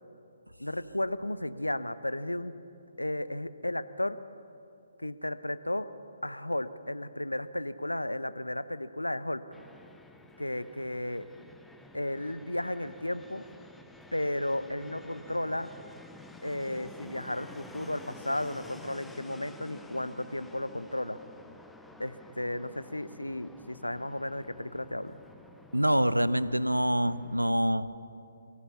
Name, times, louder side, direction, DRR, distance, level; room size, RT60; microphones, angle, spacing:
voice 1, 0.6-2.5 3.0-4.2 5.0-5.9 6.2-9.4 10.4-11.3 11.9-13.4 14.1-15.7 16.4-21.2 22.0-25.2, left 1 dB, 85° left, 13 dB, 0.9 m, -34 dB
Fixed-wing aircraft airplane, 9.5-27.5, left 2 dB, 5° left, 0.7 m, -51 dB
voice 2, 25.7-27.9, equal, 90° right, 15 dB, 0.8 m, -26 dB
24.0 x 16.0 x 7.0 m, 2.6 s
figure-of-eight pair, 135°, 0 cm